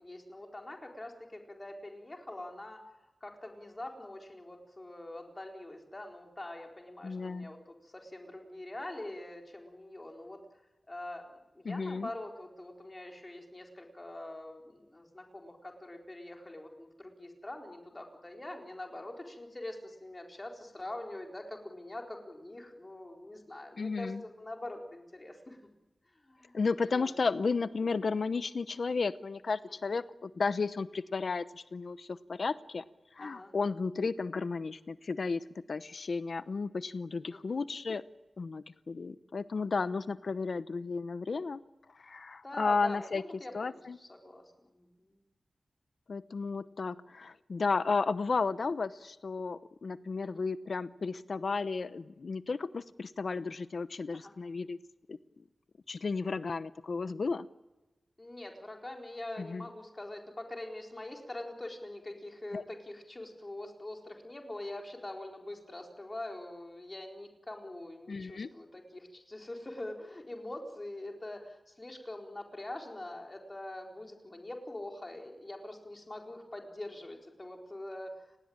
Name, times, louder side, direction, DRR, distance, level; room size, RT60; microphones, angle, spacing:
voice 1, 0.0-2.8 3.2-10.4 10.9-25.6 26.1-26.6 26.9-27.1 29.8-29.9 33.2-33.5 37.3-37.6 42.4-43.1 43.4-45.2 50.2-50.4 54.1-54.3 58.2-78.4, left 1 dB, 25° left, 2 dB, 4.2 m, -44 dB
voice 2, 7.0-7.5 11.6-12.1 23.8-24.2 26.5-32.8 33.1-38.0 38.4-41.6 41.9-43.2 43.5-44.0 46.1-54.8 55.1-55.2 55.9-57.5 59.4-59.7 62.5-62.6 68.1-68.5, left 4 dB, 65° left, 14 dB, 0.8 m, -33 dB
30.0 x 19.0 x 8.8 m, 1.1 s
wide cardioid pair, 115°, 0 cm